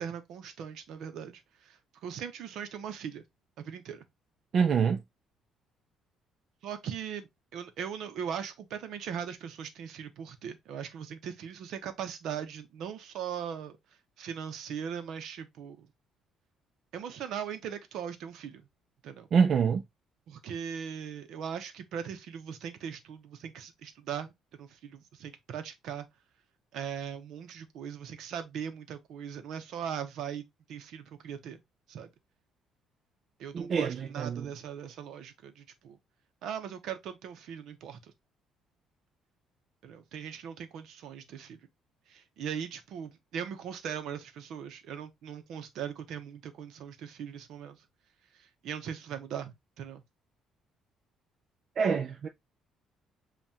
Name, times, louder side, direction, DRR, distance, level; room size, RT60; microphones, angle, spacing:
voice 1, 0.0-3.2 3.6-4.0 6.6-13.8 14.2-15.9 16.9-18.7 19.0-19.3 20.3-26.1 26.7-31.6 31.9-32.1 33.4-36.0 36.4-38.1 39.8-41.6 42.1-47.8 48.3-50.0, right 8 dB, 60° right, 0.8 m, -39 dB
voice 2, 4.5-5.0 19.3-19.8 33.5-34.5 51.8-52.3, right 6 dB, 40° right, 0.4 m, -26 dB
7.4 x 2.5 x 2.9 m
cardioid pair, 165°, 0 cm